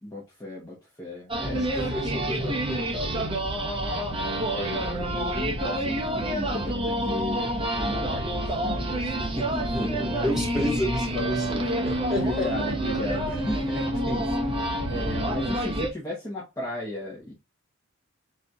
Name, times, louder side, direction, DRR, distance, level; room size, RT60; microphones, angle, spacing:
voice 1, 0.0-1.7 4.5-9.9 12.2-17.3, left 1 dB, 15° left, 1.2 m, -35 dB
sound 1, 1.3-15.9, right 1 dB, 25° right, 1.0 m, -28 dB
voice 2, 1.5-3.3 9.6-12.5, left 1 dB, ahead, 2.9 m, -31 dB
4.4 x 4.2 x 2.4 m
head